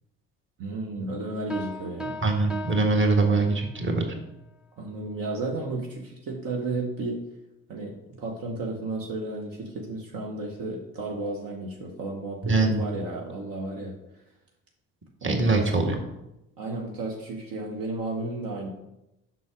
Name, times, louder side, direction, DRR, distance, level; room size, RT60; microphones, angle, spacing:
voice 1, 0.6-2.2 4.8-7.2 7.7-14.0 15.2-15.7 16.6-18.7, right 2 dB, 60° right, 0 dB, 1.1 m, -33 dB
sound 1, 1.5-3.9, equal, ahead, 0.7 m, -38 dB
voice 2, 2.2-4.0 12.4-12.8 15.2-15.9, right 3 dB, 30° right, 2 dB, 1.5 m, -23 dB
5.8 x 3.9 x 5.0 m, 0.90 s
hypercardioid pair, 55°, 39 cm